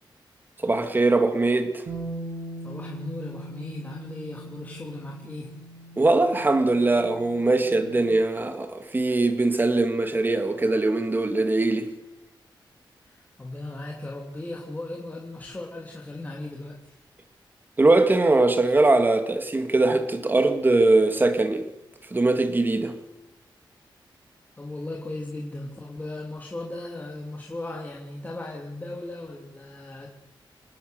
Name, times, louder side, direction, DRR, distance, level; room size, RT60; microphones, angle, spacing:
voice 1, 0.6-1.8 6.0-11.9 17.8-21.7 22.1-23.0, right 2 dB, 25° right, 2.4 m, -21 dB
Bass guitar, 1.9-8.1, right 1 dB, 75° right, 7.0 m, -40 dB
voice 2, 2.6-5.6 13.1-17.0 24.6-30.1, left 2 dB, 20° left, 2.9 m, -37 dB
27.0 x 19.5 x 6.9 m
wide cardioid pair, 140°, 8 cm